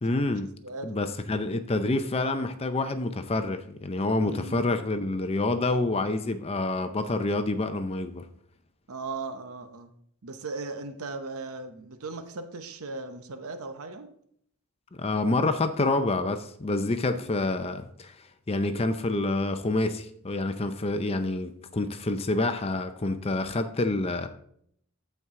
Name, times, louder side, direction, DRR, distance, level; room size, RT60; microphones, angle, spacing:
voice 1, 0.0-0.5 0.8-8.2 15.0-24.3, left 2 dB, 25° left, 9 dB, 0.5 m, -27 dB
voice 2, 0.6-1.1 4.2-4.6 8.9-9.9 10.2-14.1 17.2-17.3, right 3 dB, 75° right, 7 dB, 0.8 m, -38 dB
14.0 x 4.6 x 3.7 m, 0.67 s
head